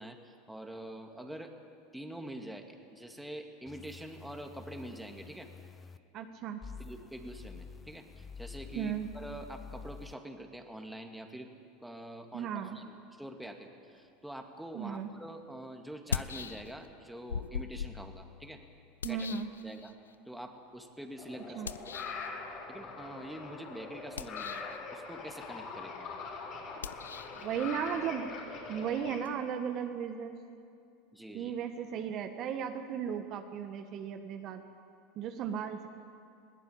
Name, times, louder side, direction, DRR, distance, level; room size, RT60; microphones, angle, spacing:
voice 1, 0.0-1.5 1.9-5.5 6.8-11.5 11.8-18.6 19.1-19.3 19.6-19.9 20.2-22.0 22.7-26.1 31.1-31.6, right 1 dB, 5° right, 4 dB, 2.4 m, -45 dB
sound 1, 3.7-6.0 6.6-10.1, left 5 dB, 25° left, 0.8 m, -49 dB
voice 2, 6.1-6.6 8.7-9.1 12.3-12.8 14.7-15.1 19.0-19.5 21.6-21.7 27.3-28.3 28.7-30.4 31.3-34.6 35.1-35.9, right 8 dB, 50° right, 6 dB, 1.5 m, -35 dB
sound 2, 14.9-15.0 15.9-17.0 17.3-20.1 21.6-22.3 24.0-24.8 26.8-29.3, left 7 dB, 90° left, 0.6 m, -41 dB
sound 3, 21.2-29.2, left 4 dB, 50° left, 6.0 m, -43 dB
21.0 x 17.5 x 8.7 m, 2.4 s
hypercardioid pair, 85°, 0 cm